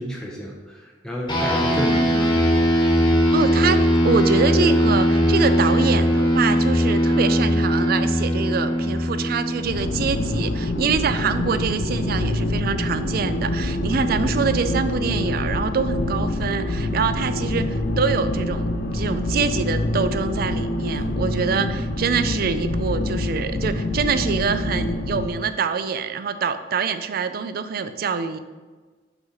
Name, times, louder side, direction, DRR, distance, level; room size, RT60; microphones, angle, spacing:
voice 1, 0.0-2.3, equal, 5° left, -2 dB, 0.7 m, -31 dB
sound 1, 1.3-11.0, equal, 30° left, 1.4 m, -20 dB
voice 2, 1.7-2.4 3.3-3.8 4.0-18.7 18.9-28.4, right 5 dB, 55° right, 11 dB, 0.4 m, -25 dB
sound 2, 9.6-25.3, left 1 dB, 55° left, 0.5 m, -25 dB
5.7 x 4.0 x 5.5 m, 1.3 s
head